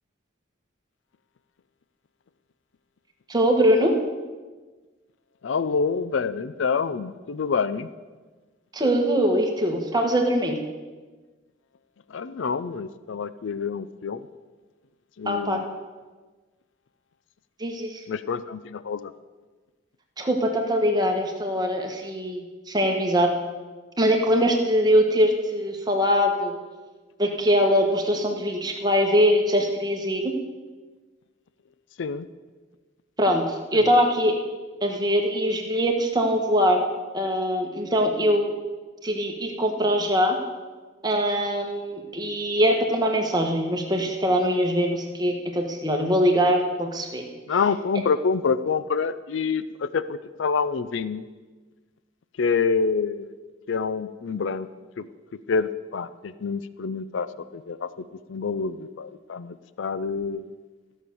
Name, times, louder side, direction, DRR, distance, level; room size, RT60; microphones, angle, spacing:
voice 1, 3.3-3.9 8.7-10.6 15.2-15.6 17.6-18.0 20.2-23.3 24.0-26.6 27.2-30.3 33.2-34.3 34.8-36.8 37.1-38.5 39.0-40.4 41.0-47.2, equal, 20° right, 2 dB, 1.5 m, -22 dB
voice 2, 5.4-7.9 12.1-14.3 15.2-15.7 18.1-19.1 32.0-32.3 33.7-33.9 47.5-51.3 52.4-53.3 53.7-54.7 55.0-55.1 55.5-60.5, left 5 dB, 80° left, 14 dB, 0.5 m, -27 dB
14.0 x 6.6 x 6.9 m, 1.3 s
head